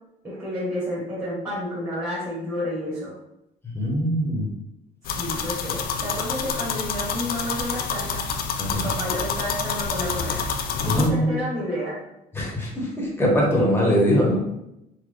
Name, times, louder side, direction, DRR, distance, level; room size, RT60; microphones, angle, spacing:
voice 1, 0.2-3.2 5.2-8.3 8.7-10.5 10.8-12.0, equal, 20° right, -9 dB, 1.4 m, -30 dB
voice 2, 3.6-4.5 8.6-8.8 10.8-11.3 12.3-14.4, equal, 15° left, -3 dB, 1.0 m, -22 dB
sound 1, 5.0-11.1, left 6 dB, 60° left, 0.5 m, -28 dB
4.0 x 2.2 x 3.2 m, 0.85 s
cardioid pair, 110°, 17 cm